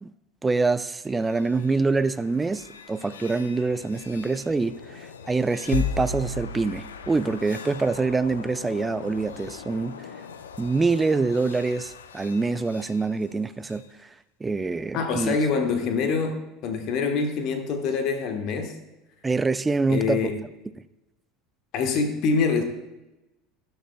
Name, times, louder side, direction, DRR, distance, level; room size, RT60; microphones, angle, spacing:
voice 1, 0.4-10.1 10.6-13.8 14.4-15.4 19.2-20.3, right 3 dB, 15° right, 0.4 m, -25 dB
sound 1, 1.0-13.9, left 6 dB, 70° left, 0.5 m, -38 dB
voice 2, 14.9-18.7 19.9-20.4 21.7-22.6, left 5 dB, 50° left, 1.3 m, -25 dB
19.0 x 8.0 x 2.3 m
figure-of-eight pair, 70°, 0 cm